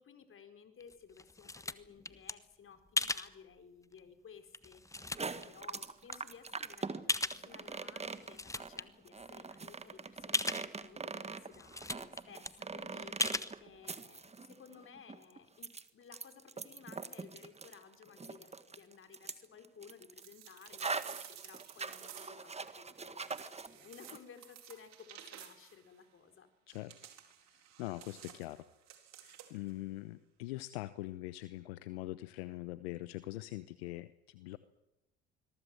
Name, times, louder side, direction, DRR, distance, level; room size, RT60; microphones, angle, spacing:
voice 1, 0.0-26.5, left 7 dB, 40° left, 7 dB, 4.6 m, -57 dB
sound 1, 0.8-2.3 3.0-3.3 4.0-4.1 4.5-5.5 6.1-6.2 7.1-7.7 8.1-8.8 9.2-9.3 9.5-9.6 10.3-10.7 11.2-11.3 11.5-12.2 12.4-12.5 13.2-13.5, left 2 dB, 10° left, 1.3 m, -36 dB
sound 2, 5.0-23.7 24.0-24.2, right 4 dB, 20° right, 1.8 m, -43 dB
sound 3, 20.2-22.6 23.2-25.8 26.7-29.7, right 11 dB, 60° right, 4.2 m, -53 dB
voice 2, 27.8-28.6 29.2-34.6, left 18 dB, 75° left, 14 dB, 1.0 m, -43 dB
25.5 x 22.5 x 7.8 m, 0.91 s
hypercardioid pair, 65°, 31 cm